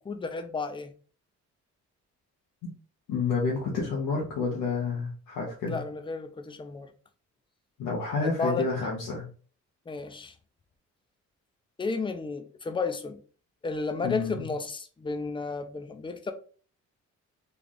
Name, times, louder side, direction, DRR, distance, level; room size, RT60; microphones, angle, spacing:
voice 1, 0.0-0.9 5.6-6.9 8.2-8.7 9.9-10.3 11.8-13.2 13.6-16.3, left 4 dB, 15° left, 0.5 m, -33 dB
voice 2, 3.1-5.8 7.8-9.3 14.0-14.4, left 4 dB, 85° left, 1.0 m, -29 dB
3.4 x 2.4 x 3.9 m
cardioid pair, 90°, 30 cm